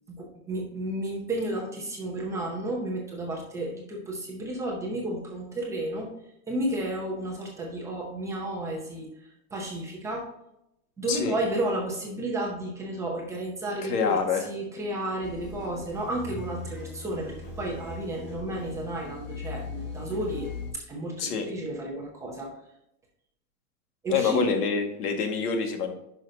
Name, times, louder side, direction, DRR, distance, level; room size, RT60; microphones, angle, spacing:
voice 1, 0.1-6.1 6.5-10.3 11.0-22.6 24.0-24.5, right 1 dB, 5° right, -2 dB, 0.6 m, -32 dB
voice 2, 13.9-14.4 21.2-21.5 24.1-25.9, left 5 dB, 80° left, 4 dB, 1.9 m, -26 dB
sound 1, 15.2-20.7, left 3 dB, 30° left, 3.0 m, -39 dB
10.0 x 5.8 x 2.7 m, 0.82 s
supercardioid pair, 170°, 46 cm